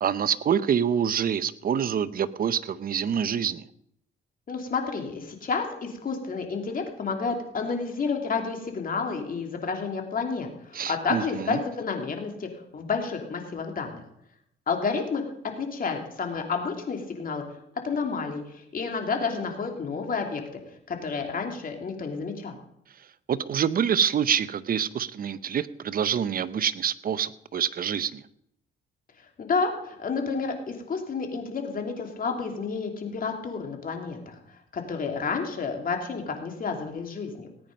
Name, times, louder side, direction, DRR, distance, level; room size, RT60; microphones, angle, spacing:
voice 1, 0.0-3.7 10.7-11.6 23.3-28.2, right 8 dB, 45° right, 15 dB, 0.7 m, -26 dB
voice 2, 4.5-14.0 14.7-15.2 15.6-17.4 17.8-20.4 20.9-22.6 29.4-34.3 34.7-37.5, left 5 dB, 45° left, 3 dB, 2.9 m, -30 dB
18.0 x 9.2 x 5.3 m, 0.74 s
cardioid pair, 90°, 20 cm